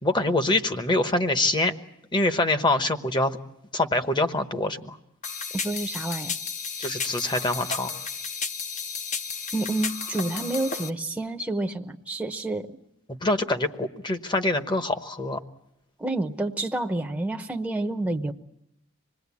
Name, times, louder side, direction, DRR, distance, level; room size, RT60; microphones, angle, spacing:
voice 1, 0.0-1.7 2.1-3.4 3.7-5.0 6.8-7.9 13.1-15.4, left 2 dB, 25° left, 8 dB, 1.1 m, -25 dB
sound 1, 5.2-10.9, left 5 dB, 40° left, 0.9 m, -33 dB
voice 2, 5.5-6.3 9.5-12.8 16.0-18.3, right 2 dB, 5° right, 3 dB, 0.9 m, -29 dB
26.0 x 19.5 x 8.5 m, 0.81 s
head